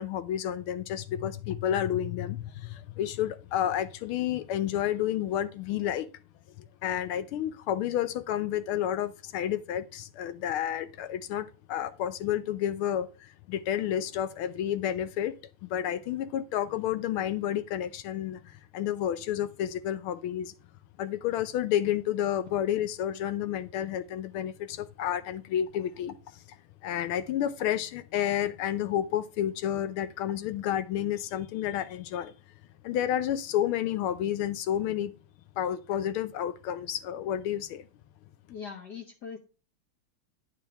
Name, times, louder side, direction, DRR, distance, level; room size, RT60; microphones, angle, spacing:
voice 1, 0.0-6.1 6.6-15.4 15.6-20.5 21.0-26.2 26.8-32.3 32.8-35.1 35.6-37.9, left 11 dB, 80° left, 1.5 m, -30 dB
voice 2, 38.5-39.4, left 6 dB, 55° left, 1.3 m, -41 dB
10.5 x 5.9 x 3.4 m
omnidirectional pair, 2.4 m